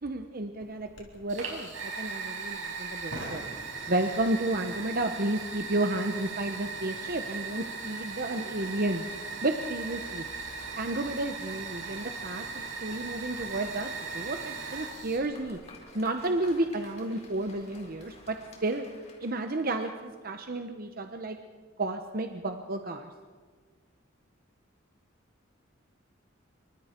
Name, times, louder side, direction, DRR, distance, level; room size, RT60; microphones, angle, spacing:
voice 1, 0.0-3.4 3.9-9.1 9.4-10.2 10.8-15.6 15.9-18.4 18.6-18.9 19.2-21.4 21.8-23.1, right 2 dB, 45° right, 6 dB, 1.0 m, -32 dB
Chirp tweet / Buzz, 0.6-18.4, left 1 dB, 70° left, 4.6 m, -57 dB
Fire, 1.3-15.2, right 4 dB, 75° right, 6.1 m, -38 dB
Applause, 14.7-20.3, left 2 dB, 35° left, 4.3 m, -54 dB
28.0 x 24.5 x 4.5 m, 1.5 s
head